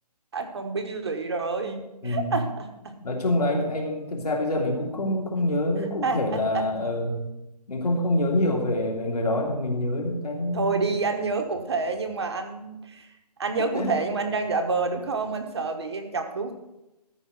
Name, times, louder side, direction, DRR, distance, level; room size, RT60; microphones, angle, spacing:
voice 1, 0.3-2.9 6.0-6.7 10.5-13.1 13.4-16.5, right 4 dB, 40° right, 5 dB, 1.2 m, -28 dB
voice 2, 2.0-2.3 3.0-7.2 7.7-10.8 13.7-14.0, left 1 dB, 70° left, 0 dB, 3.3 m, -26 dB
13.5 x 5.0 x 7.9 m, 0.95 s
hypercardioid pair, 175°, 21 cm